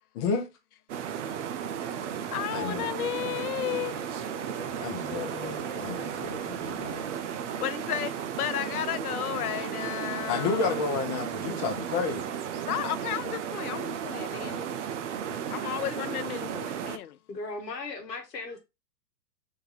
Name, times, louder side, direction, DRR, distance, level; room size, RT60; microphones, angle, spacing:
voice 1, 0.1-0.5 2.5-2.9 4.8-7.1 10.3-12.4, left 4 dB, 25° left, 0.8 m, -31 dB
sound 1, 0.9-17.0, right 8 dB, 50° right, 0.6 m, -34 dB
voice 2, 2.3-6.4 7.6-8.1 8.4-10.7 12.7-14.7 15.5-17.2, left 12 dB, 65° left, 0.5 m, -34 dB
voice 3, 17.3-18.6, left 3 dB, 80° left, 1.2 m, -37 dB
3.7 x 2.6 x 3.9 m
figure-of-eight pair, 115°, 49 cm